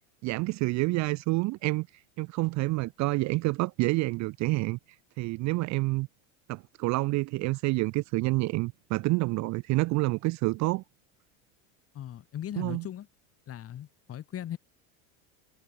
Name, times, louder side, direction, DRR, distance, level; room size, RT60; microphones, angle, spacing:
voice 1, 0.2-1.9 2.2-4.8 5.2-6.1 6.5-10.8 12.6-12.9, right 22 dB, 45° right, 0.6 m, -28 dB
voice 2, 11.9-13.1 13.5-14.6, left 11 dB, 35° left, 3.1 m, -38 dB
supercardioid pair, 130°, 42 cm